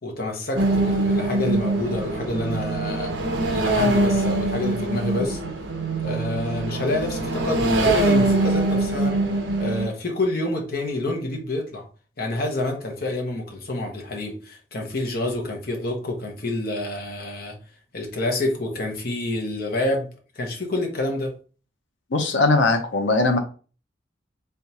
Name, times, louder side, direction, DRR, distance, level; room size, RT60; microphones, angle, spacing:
voice 1, 0.0-3.1 3.5-5.4 6.0-9.1 9.6-11.8 12.2-17.6 17.9-21.3, left 2 dB, 55° left, 2 dB, 1.0 m, -28 dB
sound 1, 0.6-9.9, right 2 dB, 75° right, 0.8 m, -23 dB
voice 2, 22.1-23.4, left 3 dB, 85° left, 6 dB, 0.8 m, -20 dB
3.6 x 3.4 x 2.8 m, 0.37 s
head